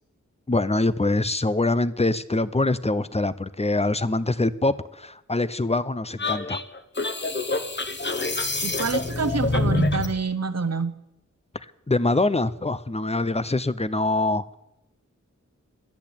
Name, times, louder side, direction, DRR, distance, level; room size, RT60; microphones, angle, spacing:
voice 1, 0.5-6.6 11.9-14.5, left 2 dB, 20° left, 16 dB, 0.6 m, -24 dB
sound 1, 6.2-10.2, left 2 dB, 35° left, 1.1 m, -26 dB
voice 2, 8.6-11.0, right 4 dB, 55° right, 12 dB, 1.0 m, -27 dB
10.5 x 8.1 x 8.7 m, 0.90 s
wide cardioid pair, 50°, 30 cm